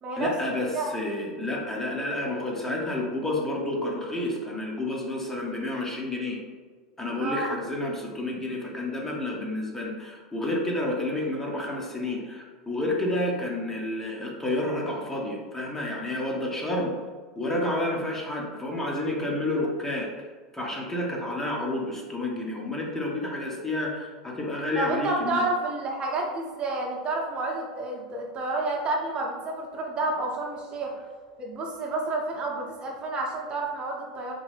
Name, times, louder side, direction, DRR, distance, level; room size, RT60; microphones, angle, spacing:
voice 1, 0.2-6.4 7.0-16.9 17.4-20.1 20.5-25.5, left 1 dB, 15° left, -2 dB, 0.9 m, -30 dB
voice 2, 7.2-7.5 24.8-30.9 31.4-34.3, right 2 dB, 35° right, -1 dB, 0.8 m, -30 dB
3.7 x 3.0 x 3.3 m, 1.5 s
figure-of-eight pair, 80°, 3 cm